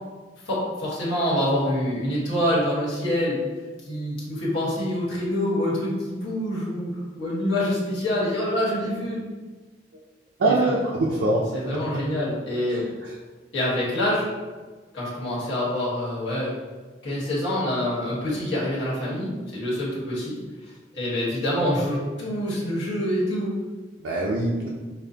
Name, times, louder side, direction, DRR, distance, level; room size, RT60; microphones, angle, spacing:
voice 1, 0.4-3.4 3.9-9.2 10.5-10.7 11.5-12.8 13.5-14.3 14.9-16.5 17.0-20.4 20.9-23.5, left 1 dB, 85° left, -7 dB, 1.3 m, -26 dB
voice 2, 10.4-11.5 13.0-13.1 24.0-24.7, right 2 dB, 80° right, -4 dB, 0.4 m, -23 dB
5.2 x 2.0 x 2.7 m, 1.3 s
head